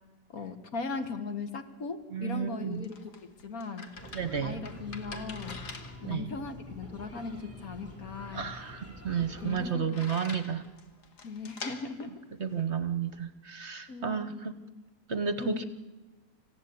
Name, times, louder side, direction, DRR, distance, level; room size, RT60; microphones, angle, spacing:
voice 1, 0.3-3.9 4.4-5.6 6.0-8.4 9.4-10.0 11.2-12.2 13.9-14.4 15.4-15.6, left 4 dB, 60° left, 8 dB, 2.0 m, -38 dB
voice 2, 2.1-2.9 4.1-4.7 6.0-6.3 8.3-10.6 12.4-14.5 15.1-15.6, right 7 dB, 45° right, 11 dB, 1.2 m, -32 dB
sound 1, 2.4-13.3, left 4 dB, 80° left, 2.4 m, -47 dB
sound 2, 3.9-9.7, left 1 dB, 10° left, 3.3 m, -46 dB
26.5 x 16.0 x 8.5 m, 1.2 s
omnidirectional pair, 1.7 m